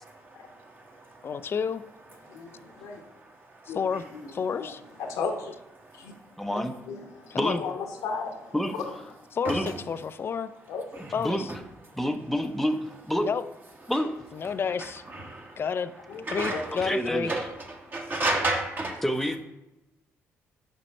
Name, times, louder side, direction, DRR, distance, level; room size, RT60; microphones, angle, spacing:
voice 1, 0.0-1.2 2.2-3.8 5.8-6.2 9.4-9.7 10.9-11.1 15.1-15.6 16.3-16.9 17.2-17.5 17.8-19.0, right 2 dB, 35° right, 1 dB, 1.4 m, -33 dB
voice 2, 1.2-1.8 3.7-4.0 4.3-4.8 7.3-7.6 9.3-10.5 11.1-11.5 13.2-13.4 14.3-15.0 15.6-15.9 16.3-17.3, left 6 dB, 45° left, 13 dB, 0.4 m, -30 dB
voice 3, 2.3-3.0 3.7-3.8 4.1-4.7 5.0-5.5 6.0-6.1 6.5-8.8 10.7-11.1 16.1-16.2 16.5-16.6, left 5 dB, 80° left, 3 dB, 0.9 m, -36 dB
voice 4, 6.4-6.7 7.4-7.6 8.5-8.7 9.5-9.7 11.2-11.4 12.0-13.3 13.9-14.1 16.8-17.5 19.0-19.4, equal, 5° left, 6 dB, 0.6 m, -28 dB
5.3 x 5.2 x 4.2 m, 0.93 s
supercardioid pair, 65°, 6 cm